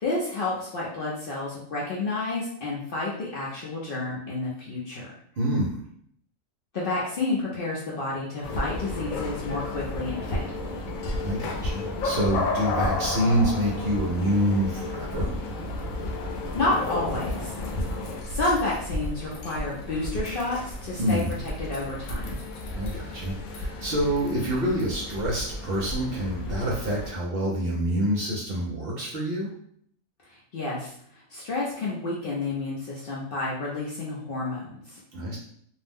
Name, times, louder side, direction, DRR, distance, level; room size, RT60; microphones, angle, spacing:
voice 1, 0.0-5.1 6.7-10.8 16.1-16.3 16.5-17.5 18.3-22.4 30.3-35.0, left 2 dB, 55° left, -5 dB, 0.6 m, -30 dB
voice 2, 5.4-5.8 11.2-15.4 21.0-21.4 22.7-29.5 35.1-35.4, equal, 60° right, -3 dB, 0.7 m, -27 dB
sound 1, 8.4-27.1, left 2 dB, 85° left, 1.0 m, -32 dB
2.5 x 2.0 x 3.3 m, 0.64 s
omnidirectional pair, 1.4 m